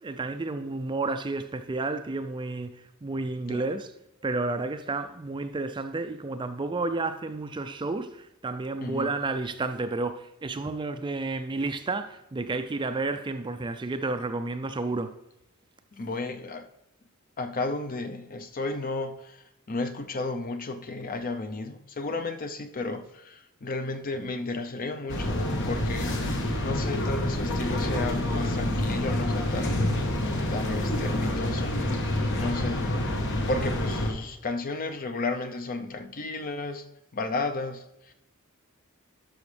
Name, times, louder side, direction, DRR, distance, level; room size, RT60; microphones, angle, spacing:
voice 1, 0.0-2.7 3.0-3.9 4.2-15.1, right 3 dB, 20° right, 0.4 m, -31 dB
voice 2, 8.8-9.1 15.9-16.7 17.4-29.8 30.1-30.2 30.5-31.8 32.3-32.9 33.5-36.8 37.1-38.1, left 2 dB, 40° left, 0.6 m, -33 dB
sound 1, 25.1-34.1, left 1 dB, 60° left, 1.2 m, -28 dB
11.5 x 6.2 x 3.3 m
head